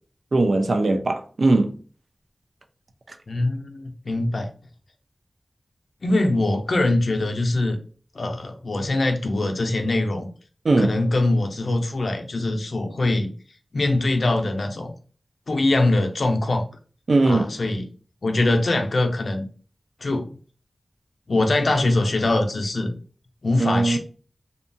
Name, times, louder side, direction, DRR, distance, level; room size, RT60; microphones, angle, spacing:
voice 1, 0.3-1.8 10.6-10.9 17.1-17.5 23.6-24.0, right 2 dB, 65° right, 0.4 m, -19 dB
voice 2, 3.3-4.5 6.0-7.8 8.1-10.3 10.8-13.3 13.7-14.9 15.5-16.6 17.3-17.9 18.2-19.5 20.0-20.3 21.3-22.9 23.4-24.0, left 2 dB, 70° left, 0.5 m, -22 dB
2.7 x 2.2 x 2.6 m
wide cardioid pair, 70°, 0 cm